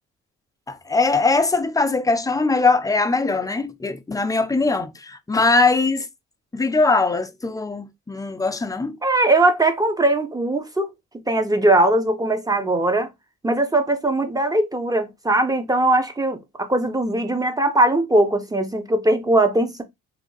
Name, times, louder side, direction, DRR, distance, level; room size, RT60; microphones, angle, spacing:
voice 1, 0.7-6.1 6.5-9.0, left 3 dB, 10° left, 0.6 m, -21 dB
voice 2, 9.0-13.1 13.4-19.8, right 2 dB, 10° right, 0.9 m, -20 dB
3.6 x 2.7 x 3.9 m
cardioid pair, 90°, 30 cm